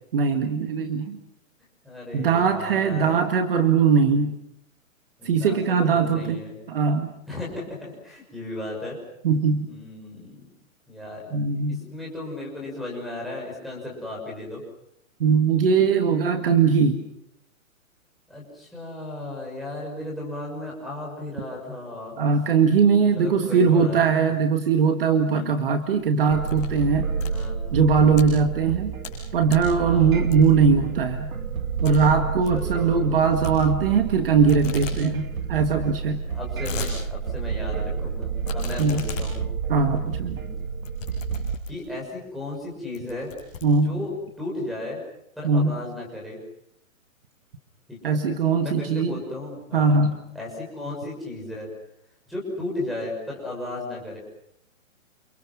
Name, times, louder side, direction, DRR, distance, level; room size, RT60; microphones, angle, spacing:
voice 1, 0.1-1.2 2.1-4.3 5.2-6.4 6.7-7.2 9.2-9.7 11.3-11.8 15.2-17.0 22.2-27.1 27.7-28.9 29.3-31.3 31.8-36.2 38.8-39.0 39.7-40.4 43.6-44.0 45.4-45.8 48.0-49.2 49.7-50.3, right 5 dB, 40° right, 6 dB, 1.9 m, -20 dB
voice 2, 1.8-3.2 5.2-6.5 7.3-9.0 9.7-10.5 10.9-14.6 18.3-22.1 23.1-24.4 25.3-25.6 27.3-27.6 28.0-28.3 29.8-30.2 32.5-33.0 35.2-35.4 36.3-38.3 38.5-39.4 40.3-40.5 41.7-43.3 43.8-44.1 44.4-45.0 45.4-46.4 47.9-48.2 48.6-50.0 50.3-51.7 52.3-54.2, left 1 dB, ahead, -3 dB, 6.3 m, -35 dB
sound 1, 25.8-26.8 27.1-28.2 28.7-29.2 29.5-29.8 30.3-30.7 31.1-31.2 31.5-31.6 31.8-32.0 32.3-32.6 33.4-34.2 34.5-35.0 35.3-35.4 35.6-35.7 36.2-36.9 37.4-37.5 38.4-41.9 42.5-42.6 42.9-44.2, left 6 dB, 30° left, 7.6 m, -37 dB
sound 2, 26.3-41.6, right 6 dB, 80° right, 2.5 m, -29 dB
29.5 x 28.0 x 6.1 m, 0.76 s
hypercardioid pair, 175°, 41 cm